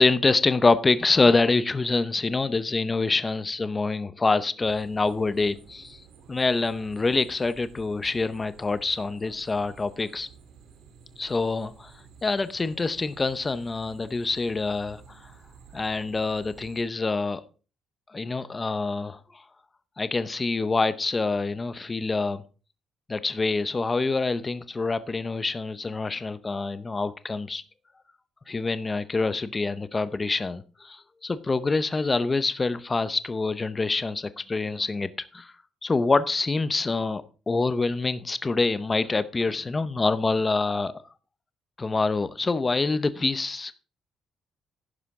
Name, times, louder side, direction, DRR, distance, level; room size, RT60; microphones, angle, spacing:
voice 1, 0.0-6.0 6.3-10.3 11.2-11.9 12.2-15.0 15.7-17.4 18.1-19.2 20.0-22.4 23.1-27.6 28.5-31.0 31.2-35.5 35.8-40.9 41.8-43.8, left 3 dB, 20° left, 0.7 m, -26 dB
sound 1, 4.6-16.8, right 6 dB, 70° right, 3.2 m, -52 dB
11.5 x 10.0 x 3.6 m
cardioid pair, 155°, 0 cm